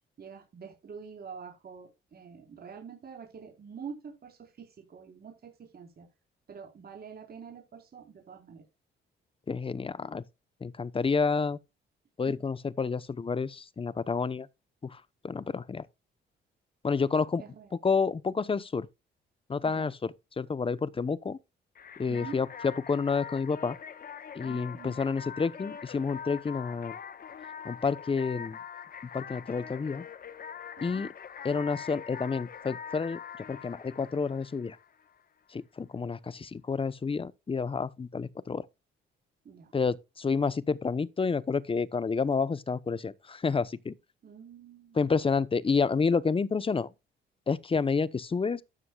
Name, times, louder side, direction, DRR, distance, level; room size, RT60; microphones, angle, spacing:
voice 1, 0.2-6.1 6.5-8.6 12.3-12.4 17.4-17.7 19.6-19.9 22.1-22.4 24.4-25.0 30.8-31.0 39.4-39.7 44.2-45.0, right 6 dB, 50° right, 4.5 m, -46 dB
voice 2, 9.5-10.2 10.6-11.6 12.2-14.5 14.8-15.9 16.8-17.4 17.8-18.9 19.5-21.4 22.0-23.8 24.3-27.0 27.6-28.6 29.1-30.0 30.8-31.1 31.4-34.8 35.5-38.7 39.7-43.9 44.9-46.9 47.5-48.6, left 5 dB, 25° left, 0.9 m, -29 dB
sound 1, 21.7-35.2, left 7 dB, 45° left, 1.2 m, -43 dB
13.0 x 9.5 x 2.4 m
cardioid pair, 90°, 20 cm